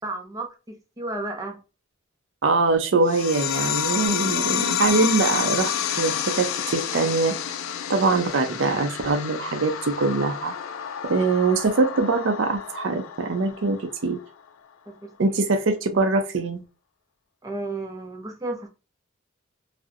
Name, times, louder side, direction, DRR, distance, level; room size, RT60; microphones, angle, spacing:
voice 1, 0.0-1.6 14.9-15.1 17.4-18.7, right 2 dB, 15° right, 0.5 m, -33 dB
voice 2, 2.4-7.4 7.9-10.5 11.0-14.2 15.2-16.6, right 3 dB, 70° right, 0.5 m, -23 dB
sound 1, 3.1-14.1, left 9 dB, 85° left, 0.4 m, -29 dB
2.4 x 2.1 x 2.5 m
head